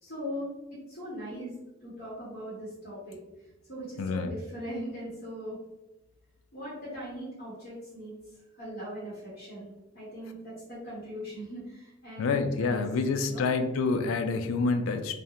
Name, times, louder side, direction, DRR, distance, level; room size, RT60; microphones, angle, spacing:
voice 1, 0.0-1.5 1.8-3.2 3.7-5.6 6.5-12.8 13.2-13.5, equal, 50° left, -8 dB, 0.9 m, -40 dB
voice 2, 4.0-4.3 12.2-15.2, left 4 dB, 85° left, 9 dB, 0.3 m, -27 dB
2.4 x 2.2 x 2.8 m, 0.96 s
head